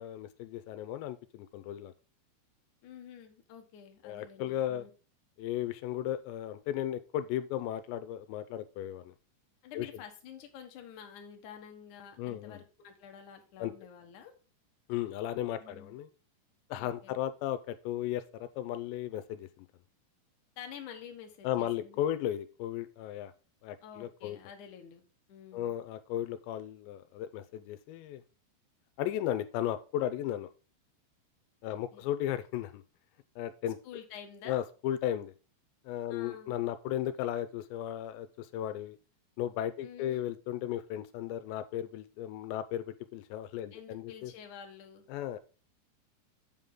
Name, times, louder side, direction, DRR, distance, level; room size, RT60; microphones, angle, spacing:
voice 1, 0.0-1.9 4.0-4.9 5.4-9.1 9.7-9.9 12.2-12.6 13.6-13.7 14.9-16.1 16.7-19.7 21.4-23.3 23.6-24.4 25.5-28.2 29.0-30.5 31.6-32.8 33.4-33.8 34.5-35.3 35.9-39.0 39.4-44.3 45.1-45.4, left 12 dB, 85° left, 11 dB, 2.8 m, -35 dB
voice 2, 2.8-4.9 9.6-14.3 15.6-15.9 16.7-17.2 20.6-22.0 23.8-25.7 31.7-32.0 33.8-34.6 36.1-36.6 39.8-40.3 43.7-45.1, left 8 dB, 70° left, 5 dB, 1.9 m, -49 dB
8.2 x 7.1 x 3.7 m, 0.34 s
omnidirectional pair, 5.1 m